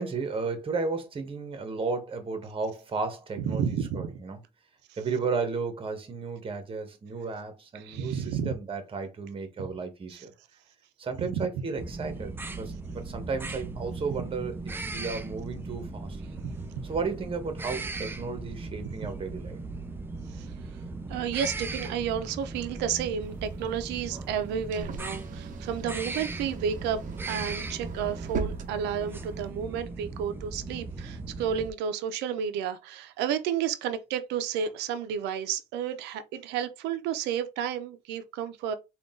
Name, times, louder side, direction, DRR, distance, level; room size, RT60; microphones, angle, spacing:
voice 1, 0.0-4.4 5.0-10.3 11.0-16.2 16.8-19.6, right 4 dB, 30° right, 1.2 m, -34 dB
voice 2, 3.5-4.1 7.7-8.5 11.2-11.4 16.4-16.5 20.4-20.5 21.1-27.0 27.3-38.7, right 8 dB, 90° right, 0.6 m, -31 dB
sound 1, 11.8-31.7, right 3 dB, 15° right, 0.5 m, -38 dB
sound 2, 23.2-29.5, right 6 dB, 50° right, 0.7 m, -40 dB
3.8 x 2.5 x 3.7 m
cardioid pair, 110°, 17 cm